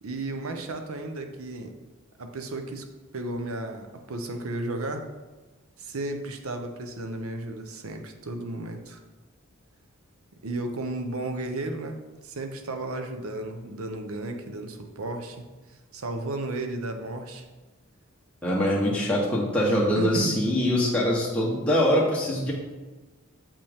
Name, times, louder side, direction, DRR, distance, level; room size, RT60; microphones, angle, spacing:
voice 1, 0.0-1.7 2.2-2.9 3.1-5.1 5.8-9.0 10.4-15.5 15.9-17.4 19.7-20.4, right 2 dB, 85° right, 5 dB, 0.8 m, -34 dB
voice 2, 18.4-22.5, equal, 5° left, -5 dB, 0.9 m, -23 dB
7.1 x 5.4 x 3.5 m, 1.2 s
head